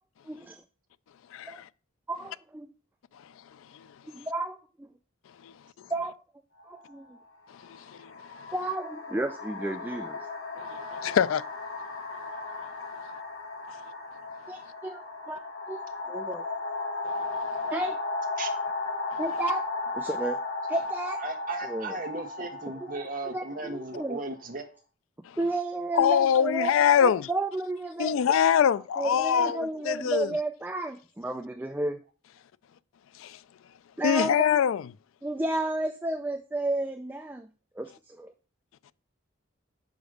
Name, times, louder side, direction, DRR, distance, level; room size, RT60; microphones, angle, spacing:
voice 1, 0.3-0.6 1.5-1.6 2.1-2.7 4.1-4.9 5.9-6.1 6.7-7.0 8.5-10.2 14.5-15.0 15.3-15.4 15.7-15.8 16.1-16.5 17.7-18.0 19.2-19.6 19.9-20.4 20.7-21.2 21.6-22.0 23.3-24.2 25.4-26.7 27.0-28.2 29.0-32.0 34.0-34.4 35.2-37.5 37.8-38.3, right 2 dB, 10° right, 0.3 m, -32 dB
sound 1, 6.6-6.8 7.7-24.4, left 3 dB, 60° left, 1.8 m, -35 dB
voice 2, 10.9-11.4 25.9-27.2 28.0-29.6 29.8-30.3 34.0-34.8, left 8 dB, 80° left, 0.3 m, -23 dB
voice 3, 21.2-24.7, right 2 dB, 40° right, 1.1 m, -36 dB
5.1 x 5.0 x 6.3 m
head